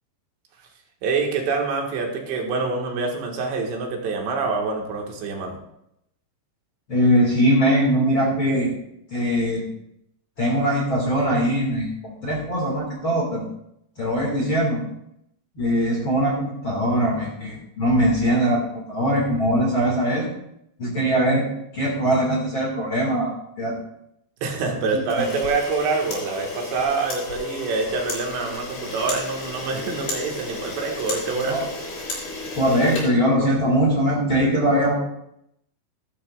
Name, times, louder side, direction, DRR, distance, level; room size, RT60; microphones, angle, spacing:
voice 1, 1.0-5.6 24.4-31.7, right 4 dB, 75° right, 1 dB, 3.9 m, -26 dB
voice 2, 6.9-8.7 9.1-9.6 10.4-13.5 14.0-14.8 15.6-20.3 20.8-21.5 21.7-23.7 24.9-25.0 31.4-31.7 32.5-34.9, equal, 40° left, -3 dB, 2.0 m, -21 dB
Camera, 25.1-33.8, left 2 dB, 65° left, 6.0 m, -33 dB
15.5 x 12.5 x 2.5 m, 0.78 s
omnidirectional pair, 5.1 m